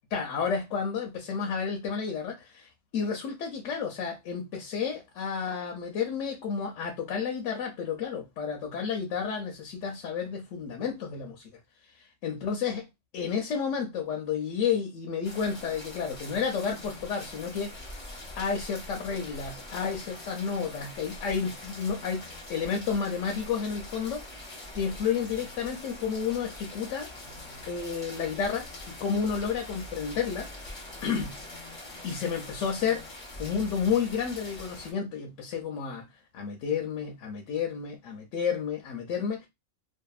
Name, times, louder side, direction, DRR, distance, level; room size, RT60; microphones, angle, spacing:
voice 1, 0.1-11.6 12.0-12.8 13.1-17.9 18.4-22.2 22.5-24.2 24.7-27.1 27.7-30.5 31.0-31.3 32.0-33.1 33.4-36.1 36.3-39.5, left 6 dB, 75° left, 0.9 m, -31 dB
sound 1, 15.2-34.9, left 1 dB, 30° left, 0.7 m, -43 dB
2.7 x 2.4 x 2.3 m
omnidirectional pair, 1.3 m